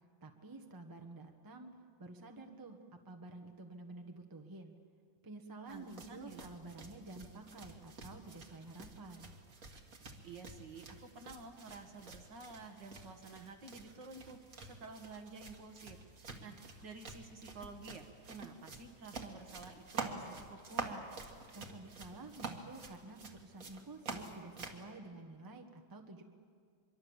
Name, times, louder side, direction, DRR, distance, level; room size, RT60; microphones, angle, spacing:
voice 1, 0.2-1.7 2.0-2.8 3.0-4.7 5.2-9.3 21.5-26.2, right 2 dB, 10° right, 4 dB, 1.2 m, -50 dB
sound 1, 5.7-24.8, right 4 dB, 45° right, 2.1 m, -48 dB
voice 2, 5.7-6.5 10.2-14.4 14.6-16.0 16.4-21.0, right 3 dB, 65° right, 4 dB, 2.3 m, -51 dB
24.5 x 23.5 x 7.3 m, 2.1 s
omnidirectional pair, 2.1 m